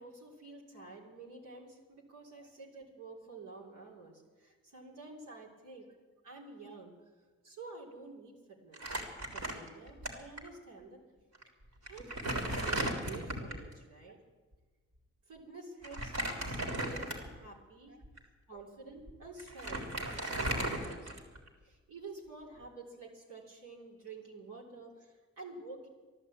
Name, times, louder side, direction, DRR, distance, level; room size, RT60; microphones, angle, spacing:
voice 1, 0.0-5.9 6.2-6.9 7.4-8.9 9.2-11.0 11.8-14.2 15.3-18.0 18.5-21.1 21.6-25.9, right 3 dB, 75° right, -4 dB, 3.6 m, -50 dB
Crumpling crinkling, 8.7-10.1 10.4-10.5 11.3-11.4 11.9-13.7 15.8-17.4 18.0-18.2 19.1-19.2 19.4-21.5, right 1 dB, 60° right, 3.5 m, -36 dB
14.0 x 11.5 x 8.6 m, 1.4 s
cardioid pair, 70°, 31 cm